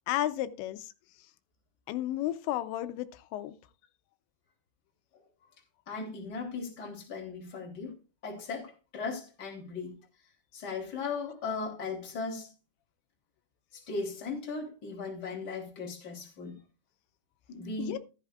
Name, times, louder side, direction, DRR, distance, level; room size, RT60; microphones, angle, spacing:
voice 1, 0.1-0.9 1.9-3.5 17.8-18.0, left 13 dB, 85° left, 3.0 m, -33 dB
voice 2, 5.9-8.0 8.2-9.9 10.5-12.5 13.7-16.6 17.5-18.0, left 4 dB, 25° left, 3.1 m, -37 dB
14.5 x 11.0 x 2.4 m
omnidirectional pair, 5.1 m